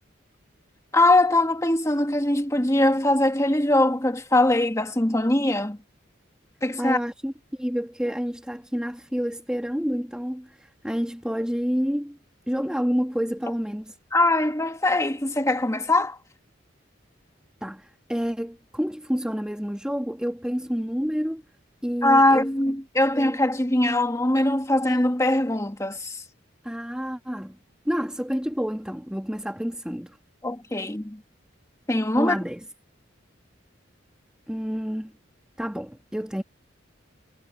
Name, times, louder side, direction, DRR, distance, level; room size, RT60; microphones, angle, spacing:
voice 1, 0.9-5.8 6.6-7.0 14.1-16.2 22.0-26.1 30.4-31.2 31.9-32.4, left 1 dB, 15° left, 1.7 m, -22 dB
voice 2, 6.8-12.2 12.5-14.0 17.6-21.4 21.8-22.8 23.1-23.4 26.6-27.6 27.8-30.2 32.2-32.7 34.5-35.1 35.6-36.4, equal, 5° right, 2.6 m, -29 dB
head